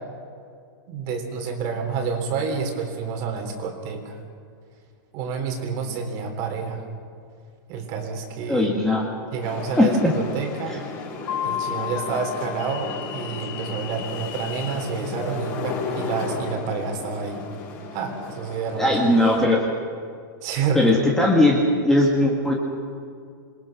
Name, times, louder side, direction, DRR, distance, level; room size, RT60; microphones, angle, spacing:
voice 1, 0.9-4.2 5.1-6.8 7.7-8.7 9.3-10.8 11.4-17.4 17.9-19.3 20.4-21.0, right 5 dB, 30° right, 4 dB, 3.5 m, -29 dB
voice 2, 8.5-9.0 9.8-10.1 10.7-10.8 18.8-19.6 20.7-22.5, left 1 dB, 5° left, -2 dB, 2.0 m, -19 dB
sound 1, 9.4-19.4, left 4 dB, 30° left, 6.6 m, -34 dB
Mallet percussion, 11.3-13.9, left 11 dB, 65° left, 3.8 m, -32 dB
28.0 x 22.0 x 6.0 m, 2.3 s
supercardioid pair, 170°, 12 cm